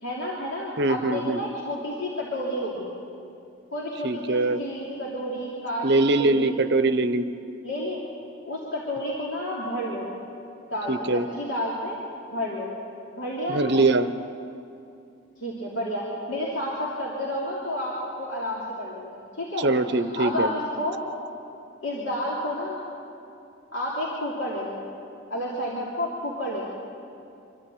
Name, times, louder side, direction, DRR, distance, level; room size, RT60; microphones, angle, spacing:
voice 1, 0.0-2.9 3.7-5.9 6.2-6.6 7.6-8.0 8.4-10.1 10.7-12.0 12.3-12.7 13.1-13.8 15.4-19.7 19.9-21.0 21.8-22.8 23.7-24.8 25.3-26.6, left 1 dB, 75° left, -6 dB, 3.0 m, -30 dB
voice 2, 0.8-1.4 4.0-4.6 5.8-7.2 10.9-11.2 13.5-14.1 19.6-20.5, right 2 dB, 55° right, 11 dB, 0.8 m, -22 dB
25.0 x 12.5 x 8.5 m, 2.6 s
head